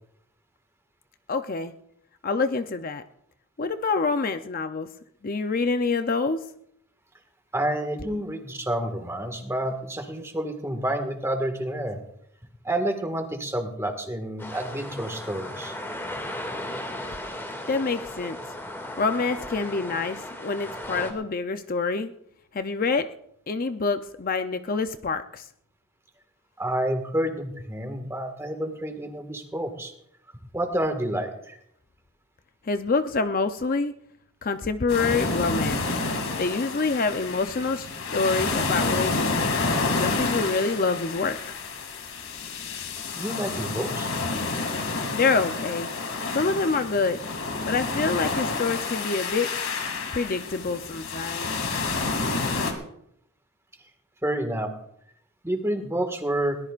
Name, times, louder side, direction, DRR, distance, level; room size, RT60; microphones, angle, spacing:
voice 1, 1.3-1.7 2.2-3.0 3.6-4.9 5.2-6.4 17.7-18.4 19.0-22.1 22.5-23.1 23.5-25.5 32.6-33.9 34.4-35.8 36.4-37.9 38.1-39.5 40.0-41.4 45.1-45.9 46.3-47.2 47.7-49.5 50.1-51.5, left 4 dB, 40° left, 8 dB, 0.6 m, -26 dB
voice 2, 7.5-12.0 12.6-15.8 26.6-29.9 30.5-31.6 43.2-44.1 54.2-54.7 55.4-56.6, right 1 dB, 10° right, 5 dB, 1.8 m, -29 dB
sound 1, 14.4-21.1, left 1 dB, 10° left, 2.2 m, -36 dB
sound 2, 34.9-52.7, left 3 dB, 75° left, 2.5 m, -29 dB
21.5 x 18.0 x 2.5 m, 0.72 s
head